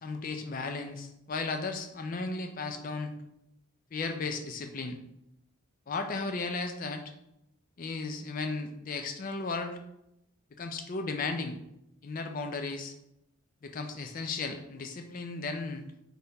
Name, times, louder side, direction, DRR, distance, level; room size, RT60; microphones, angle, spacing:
voice 1, 0.0-3.1 3.9-5.0 5.9-7.0 7.8-9.8 10.5-11.6 12.0-12.9 13.6-15.8, left 3 dB, 40° left, 6 dB, 0.4 m, -35 dB
4.0 x 3.5 x 2.8 m, 0.84 s
head